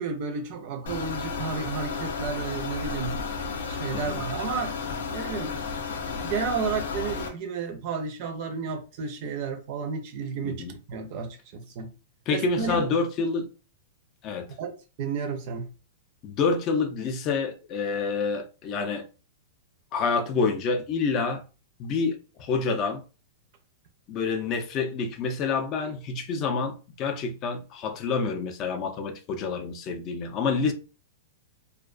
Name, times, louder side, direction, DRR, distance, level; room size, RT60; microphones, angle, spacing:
voice 1, 0.0-4.7 5.1-5.5 6.0-11.9 12.3-12.9 14.6-14.7 15.0-15.7, right 5 dB, 45° right, 0.5 m, -32 dB
sound 1, 0.9-7.3, left 5 dB, 85° left, 0.6 m, -33 dB
voice 2, 10.4-10.7 12.3-13.5 14.2-14.5 16.2-19.1 19.9-21.4 21.8-23.0 24.1-30.7, left 4 dB, 30° left, 0.4 m, -28 dB
2.3 x 2.2 x 2.4 m
supercardioid pair, 155°, 0 cm